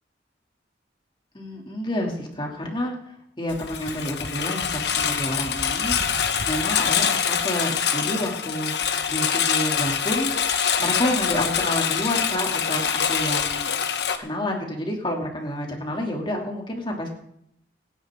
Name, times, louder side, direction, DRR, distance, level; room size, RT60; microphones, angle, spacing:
voice 1, 1.3-3.0 3.4-8.7 9.1-10.3 10.8-13.7 14.2-17.1, left 1 dB, 25° left, 1 dB, 2.7 m, -29 dB
Engine, 3.5-14.2, left 7 dB, 70° left, 1.2 m, -25 dB
26.0 x 9.8 x 3.7 m, 0.74 s
head